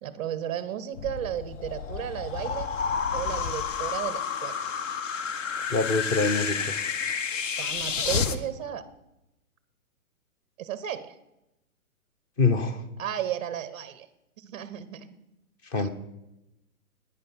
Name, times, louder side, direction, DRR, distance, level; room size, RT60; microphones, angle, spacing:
voice 1, 0.0-2.7 3.1-4.7 5.6-5.7 7.6-8.9 10.6-11.1 13.0-14.1 14.4-15.1 15.7-15.9, right 10 dB, 30° right, 14 dB, 0.5 m, -34 dB
sound 1, 0.9-8.4, left 6 dB, 60° left, 0.9 m, -30 dB
voice 2, 5.7-6.7 12.4-12.8 15.7-15.9, left 3 dB, 15° left, 10 dB, 0.6 m, -25 dB
10.0 x 9.3 x 5.8 m, 0.90 s
hypercardioid pair, 130°, 44 cm